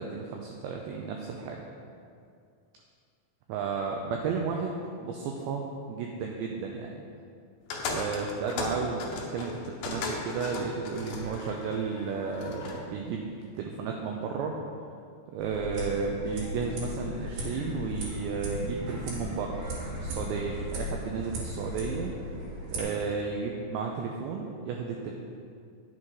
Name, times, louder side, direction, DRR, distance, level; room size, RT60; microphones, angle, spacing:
voice 1, 0.0-1.6 3.5-5.6 5.9-6.9 7.9-13.3 13.6-14.5 15.3-22.1 22.7-25.1, right 5 dB, 85° right, 1 dB, 2.5 m, -33 dB
sound 1, 7.7-12.8, left 4 dB, 75° left, 2.1 m, -36 dB
sound 2, 15.4-22.8, left 1 dB, 60° right, 3.4 m, -36 dB
9.8 x 7.4 x 4.8 m, 2.3 s
omnidirectional pair, 5.7 m